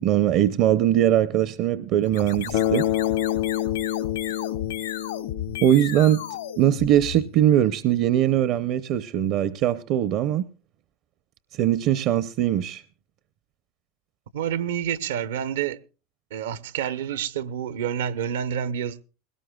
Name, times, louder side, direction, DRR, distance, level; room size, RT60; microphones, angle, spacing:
voice 1, 0.0-2.9 5.6-6.2 6.6-10.4 11.5-12.8, right 11 dB, 50° right, 0.7 m, -21 dB
sound 1, 2.0-7.5, left 11 dB, 90° left, 2.4 m, -34 dB
Bass guitar, 2.5-6.5, left 12 dB, 65° left, 1.0 m, -27 dB
voice 2, 14.3-15.8 16.3-19.0, right 9 dB, 80° right, 0.9 m, -28 dB
20.5 x 18.0 x 2.3 m
hypercardioid pair, 110°, 0 cm